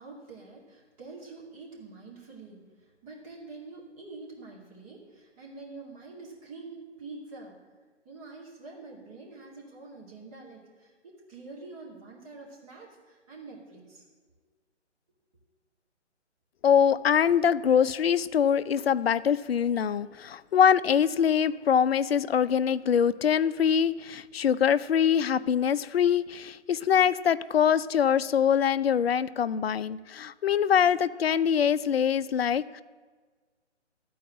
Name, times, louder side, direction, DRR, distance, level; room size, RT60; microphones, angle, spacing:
voice 1, 0.0-2.6 3.0-7.6 8.0-14.0, right 3 dB, 30° right, -3 dB, 2.4 m, -46 dB
voice 2, 16.6-32.8, left 8 dB, 55° left, 15 dB, 0.4 m, -24 dB
12.5 x 4.7 x 8.4 m, 1.4 s
figure-of-eight pair, 150°, 36 cm